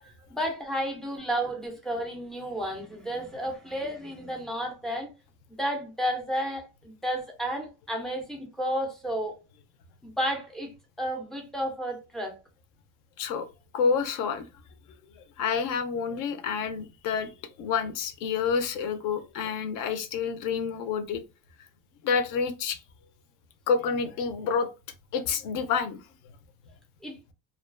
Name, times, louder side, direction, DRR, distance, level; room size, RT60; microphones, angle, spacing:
voice 1, 0.0-5.1 5.6-9.4 10.0-10.7 11.0-12.3 27.0-27.2, equal, ahead, 0.3 m, -32 dB
voice 2, 13.2-13.5 13.7-14.5 15.4-17.3 17.6-21.2 22.0-22.8 23.7-24.7 25.1-26.1, left 6 dB, 55° left, 0.5 m, -28 dB
2.3 x 2.3 x 2.3 m
cardioid pair, 145°, 38 cm